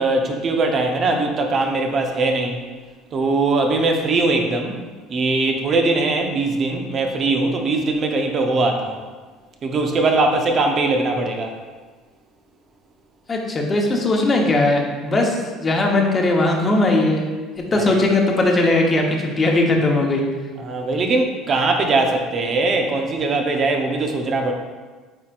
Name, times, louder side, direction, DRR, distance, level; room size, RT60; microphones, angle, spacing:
voice 1, 0.0-2.6 3.1-4.8 5.1-9.0 9.6-11.5 17.8-18.0 20.6-24.5, right 3 dB, 40° right, 3 dB, 0.9 m, -21 dB
voice 2, 13.3-17.3 17.7-20.2, left 2 dB, 30° left, 0 dB, 1.1 m, -19 dB
8.5 x 4.2 x 2.6 m, 1.4 s
supercardioid pair, 100°, 0 cm